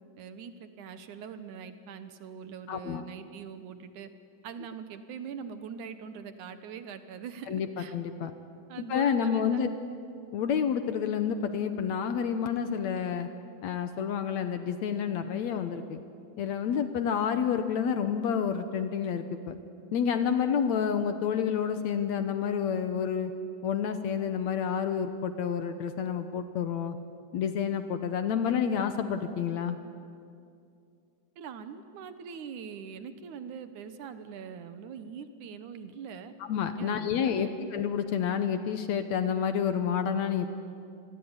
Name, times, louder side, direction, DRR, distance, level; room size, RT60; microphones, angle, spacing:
voice 1, 0.2-4.1 4.4-8.0 8.7-9.7 31.4-36.3 36.8-37.6, right 7 dB, 70° right, 10 dB, 2.5 m, -42 dB
voice 2, 2.7-3.0 7.5-7.7 7.9-8.3 8.9-9.7 10.3-13.3 13.6-16.0 16.4-19.6 19.9-23.3 23.6-27.0 27.3-29.8 36.5-40.5, left 7 dB, 65° left, 9 dB, 2.0 m, -29 dB
28.0 x 21.0 x 9.7 m, 2.4 s
omnidirectional pair, 3.9 m